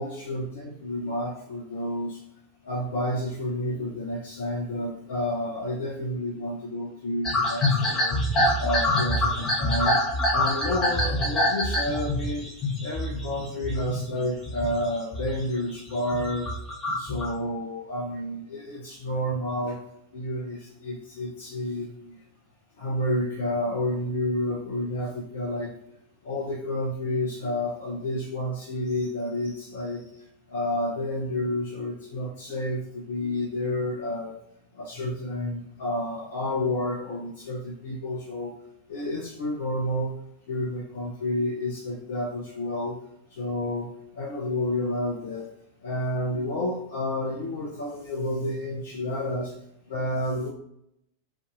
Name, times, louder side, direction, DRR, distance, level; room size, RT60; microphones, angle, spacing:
voice 1, 0.0-2.2 2.6-8.2 8.6-10.0 10.3-12.5 12.8-16.5 16.9-19.8 20.1-22.2 22.8-25.7 26.2-30.0 30.5-34.4 34.8-38.5 38.9-40.1 40.5-43.0 43.4-45.5 45.8-49.6 49.9-50.5, left 1 dB, 55° left, -1 dB, 0.6 m, -30 dB
sound 1, 7.2-14.0 14.4-15.4 15.8-17.3, left 1 dB, 20° left, 1.1 m, -25 dB
2.7 x 2.4 x 3.8 m, 0.75 s
figure-of-eight pair, 90°, 0 cm